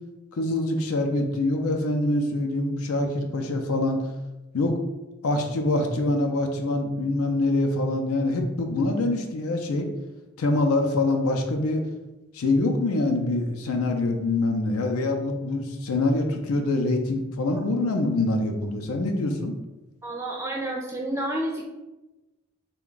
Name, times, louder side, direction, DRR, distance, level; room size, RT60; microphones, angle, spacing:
voice 1, 0.3-4.0 4.5-4.8 5.2-9.9 10.4-11.9 12.3-19.5, left 2 dB, 85° left, 4 dB, 0.5 m, -25 dB
voice 2, 20.0-21.6, right 1 dB, 10° right, -1 dB, 0.3 m, -30 dB
3.4 x 2.3 x 3.8 m, 1.0 s
head